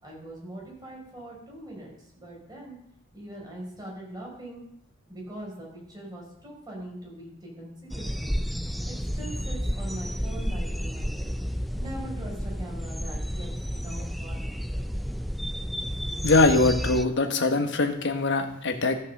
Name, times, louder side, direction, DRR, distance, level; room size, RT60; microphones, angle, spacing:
voice 1, 0.0-2.8 3.1-4.6 5.1-8.3 8.9-11.4 11.8-14.6, right 1 dB, 20° right, -2 dB, 4.5 m, -42 dB
sound 1, 7.9-17.1, equal, ahead, 0.4 m, -31 dB
voice 2, 16.2-19.0, left 3 dB, 60° left, 5 dB, 1.2 m, -22 dB
14.0 x 5.9 x 6.7 m, 0.76 s
head